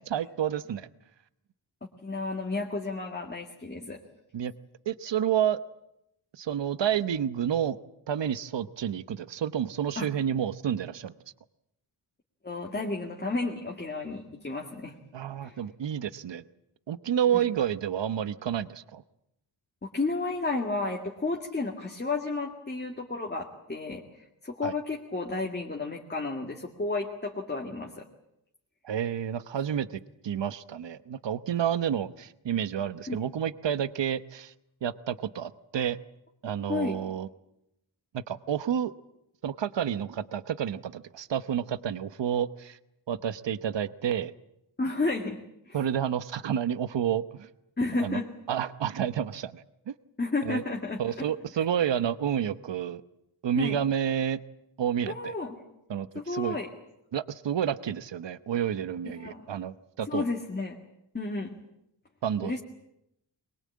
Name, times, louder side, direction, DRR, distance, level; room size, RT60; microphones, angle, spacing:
voice 1, 0.1-0.9 4.3-4.5 4.9-5.6 6.4-7.8 8.1-11.1 15.1-16.4 16.9-19.0 24.6-24.7 28.8-29.9 30.2-34.5 34.8-36.0 36.4-37.3 38.1-38.9 39.4-42.8 43.1-44.3 45.7-47.5 48.0-48.2 48.5-50.0 50.4-50.6 51.0-53.0 53.4-54.4 54.8-55.3 55.9-56.6 57.1-60.2 62.2-62.6, right 9 dB, 70° right, 13 dB, 1.0 m, -30 dB
voice 2, 2.0-4.0 10.0-10.1 12.4-15.0 15.4-15.6 17.3-17.4 19.9-28.1 33.1-33.2 36.7-37.0 44.8-45.4 45.7-45.8 47.8-48.3 50.2-51.2 53.6-53.8 55.1-55.6 56.2-56.7 59.1-59.4 60.1-60.8 61.1-61.5 62.4-62.6, left 3 dB, 20° left, 0 dB, 2.0 m, -32 dB
23.0 x 22.0 x 8.6 m, 0.82 s
wide cardioid pair, 155°, 45 cm